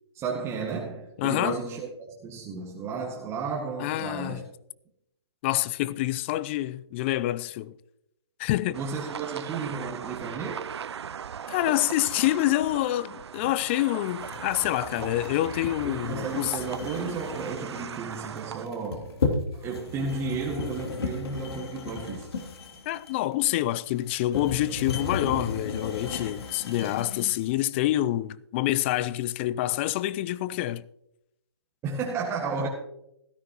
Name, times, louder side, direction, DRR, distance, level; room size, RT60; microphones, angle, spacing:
voice 1, 0.1-1.9 2.2-4.4 8.7-10.7 15.8-19.2 19.5-22.3 31.8-32.7, right 4 dB, 20° right, 1.7 m, -33 dB
voice 2, 1.2-1.6 3.8-4.4 5.4-7.8 8.4-8.8 11.5-16.6 22.9-30.8, left 15 dB, 25° left, 0.4 m, -27 dB
sound 1, 8.7-18.7, right 7 dB, 70° right, 0.4 m, -38 dB
sound 2, 14.2-27.5, left 4 dB, 60° left, 3.0 m, -34 dB
17.0 x 13.5 x 3.0 m
figure-of-eight pair, 135°, 14 cm